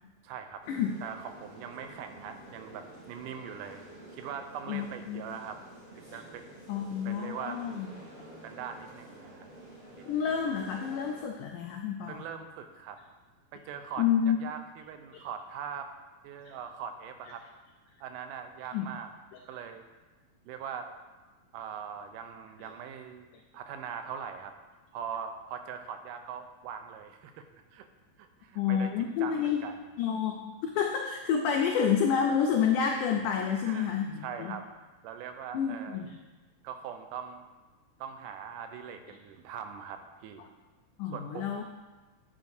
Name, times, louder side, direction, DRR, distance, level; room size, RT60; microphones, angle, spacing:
voice 1, 0.2-0.6 1.0-3.8 4.1-5.6 6.0-6.7 7.0-7.6 8.4-9.5 10.0-10.1 12.1-13.0 13.5-14.1 14.4-15.9 16.2-17.4 18.0-19.1 19.5-19.8 20.5-20.9 21.5-23.3 23.5-24.5 24.9-27.9 28.2-29.8 33.4-36.0 36.6-37.4 38.0-40.5 41.1-41.5, right 7 dB, 80° right, 7 dB, 2.0 m, -41 dB
sound 1, 0.6-11.2, right 1 dB, 35° right, 2.1 m, -50 dB
voice 2, 4.7-5.2 6.7-7.9 10.1-12.3 14.0-14.6 18.7-18.9 22.6-22.7 28.6-29.7 30.0-34.6 35.5-36.2 41.0-41.6, left 7 dB, 85° left, 2 dB, 1.8 m, -29 dB
9.2 x 7.0 x 2.6 m, 1.2 s
omnidirectional pair, 4.1 m